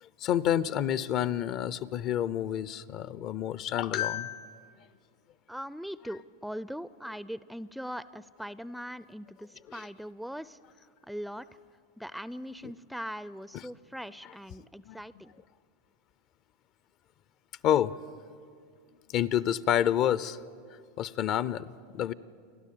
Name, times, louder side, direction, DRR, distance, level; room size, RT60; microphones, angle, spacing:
voice 1, 0.0-4.6 9.7-9.8 13.5-13.6 14.8-15.0 17.6-17.9 19.1-20.4 21.0-22.1, left 10 dB, 50° left, 18 dB, 0.6 m, -29 dB
voice 2, 5.5-11.5 12.0-15.3, equal, ahead, 17 dB, 0.5 m, -41 dB
29.5 x 12.0 x 8.5 m, 2.2 s
hypercardioid pair, 100°, 0 cm